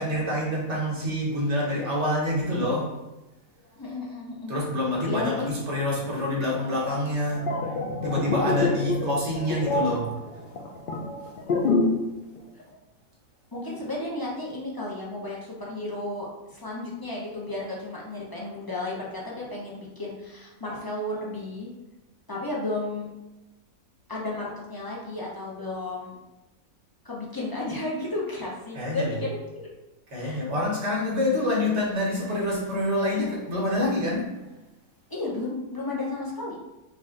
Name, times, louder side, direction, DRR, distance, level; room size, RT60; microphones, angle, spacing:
voice 1, 0.0-3.0 4.5-7.6 8.0-10.2 28.7-29.2 30.1-34.3, left 1 dB, 50° right, -4 dB, 1.4 m, -26 dB
voice 2, 3.8-4.5 5.0-5.5 13.5-21.7 22.3-23.1 24.1-26.2 27.0-29.4 30.1-30.4 35.1-36.5, left 2 dB, 25° left, -4 dB, 0.5 m, -33 dB
sound 1, 7.3-12.1 12.4-12.6, left 3 dB, 80° left, 0.4 m, -26 dB
3.9 x 2.6 x 3.8 m, 1.0 s
omnidirectional pair, 1.5 m